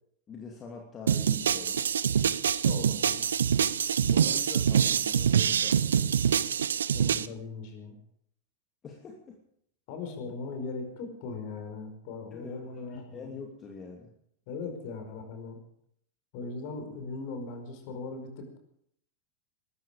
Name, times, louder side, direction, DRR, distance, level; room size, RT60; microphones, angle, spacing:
voice 1, 0.3-1.9 4.0-6.4 8.8-9.4 12.3-14.1, left 5 dB, 25° left, 0 dB, 2.8 m, -44 dB
sound 1, 1.1-7.3, right 8 dB, 65° right, 0.6 m, -25 dB
voice 2, 2.5-3.2 6.9-8.0 9.9-13.3 14.5-15.6 16.3-18.6, left 4 dB, 45° left, 5 dB, 4.9 m, -39 dB
20.5 x 13.5 x 5.1 m, 0.69 s
figure-of-eight pair, 90°, 0 cm